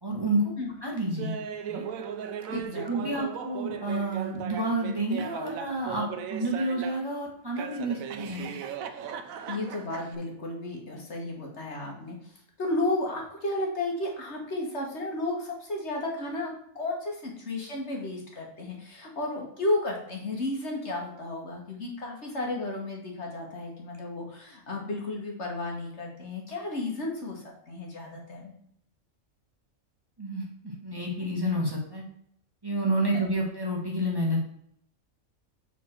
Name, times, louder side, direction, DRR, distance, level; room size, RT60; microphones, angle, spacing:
voice 1, 0.0-0.5 0.8-1.3 1.7-1.8 2.5-2.6 2.8-8.6 30.2-32.0 32.6-34.4, right 1 dB, 20° right, -3 dB, 1.5 m, -29 dB
Laughter, 1.2-7.1 7.6-10.2, right 7 dB, 80° right, 1.1 m, -37 dB
voice 2, 2.5-3.1 9.5-12.3 12.6-28.5 33.1-33.2, left 2 dB, 55° left, 0 dB, 1.8 m, -33 dB
7.3 x 4.3 x 4.4 m, 0.68 s
omnidirectional pair, 1.4 m